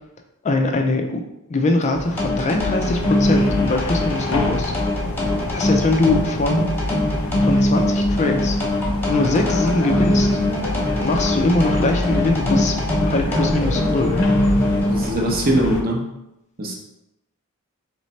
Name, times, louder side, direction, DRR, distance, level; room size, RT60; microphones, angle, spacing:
voice 1, 0.4-1.2 1.5-5.0 5.5-6.7 7.4-8.6 9.1-10.3 11.0-14.2, left 2 dB, 30° left, 4 dB, 0.4 m, -22 dB
sound 1, 1.9-15.8, left 1 dB, 70° left, 0.6 m, -27 dB
sound 2, 2.2-15.1, left 1 dB, 10° left, 1.0 m, -22 dB
voice 2, 14.9-16.0 16.6-16.7, right 1 dB, 45° right, 0 dB, 0.7 m, -21 dB
3.3 x 3.1 x 4.1 m, 0.88 s
head